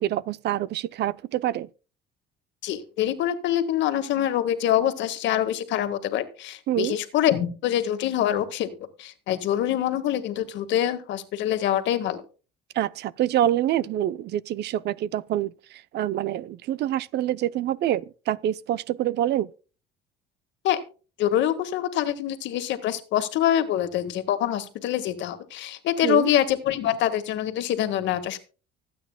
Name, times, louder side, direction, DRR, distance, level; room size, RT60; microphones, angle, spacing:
voice 1, 0.0-1.7 6.7-7.0 12.7-19.5 26.0-26.3, right 12 dB, 60° right, 0.6 m, -26 dB
voice 2, 2.6-8.7 9.0-12.2 20.6-20.8 21.2-28.4, left 11 dB, 65° left, 1.7 m, -25 dB
25.0 x 8.7 x 2.2 m
cardioid pair, 120°, 20 cm